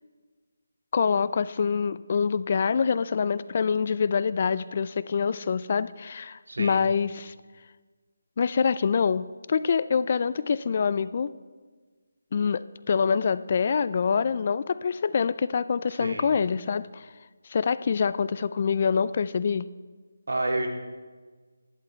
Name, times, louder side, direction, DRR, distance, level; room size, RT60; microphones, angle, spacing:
voice 1, 0.9-7.3 8.4-11.3 12.3-17.1 17.5-19.7, left 6 dB, 35° left, 16 dB, 0.3 m, -25 dB
voice 2, 6.5-6.8 16.0-16.3 20.3-20.7, right 2 dB, 80° right, 2 dB, 2.2 m, -29 dB
11.5 x 11.0 x 4.4 m, 1.4 s
figure-of-eight pair, 170°, 0 cm